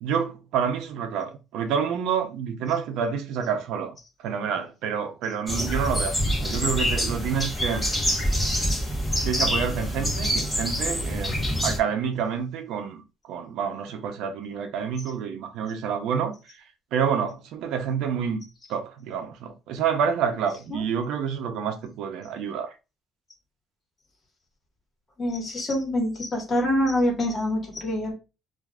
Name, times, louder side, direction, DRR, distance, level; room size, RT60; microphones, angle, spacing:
voice 1, 0.0-4.0 4.2-7.9 9.2-13.0 13.3-16.3 16.9-18.4 18.7-22.7, right 7 dB, 85° right, 0.6 m, -28 dB
sound 1, 5.5-11.8, equal, 10° left, 1.0 m, -26 dB
voice 2, 25.2-28.1, left 1 dB, 30° left, 1.4 m, -25 dB
2.5 x 2.4 x 3.3 m
cardioid pair, 140°, 0 cm